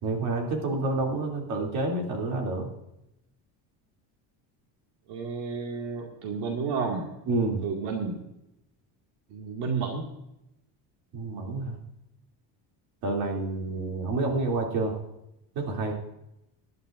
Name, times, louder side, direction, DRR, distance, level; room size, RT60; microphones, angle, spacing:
voice 1, 0.0-2.7 7.3-7.6 11.1-11.8 13.0-15.0 15.6-15.9, right 2 dB, 55° right, 1 dB, 3.1 m, -28 dB
voice 2, 5.1-7.1 7.6-8.2 9.3-10.1, right 5 dB, 80° right, 0 dB, 2.3 m, -31 dB
22.5 x 11.0 x 2.6 m, 0.86 s
cardioid pair, 180°, 43 cm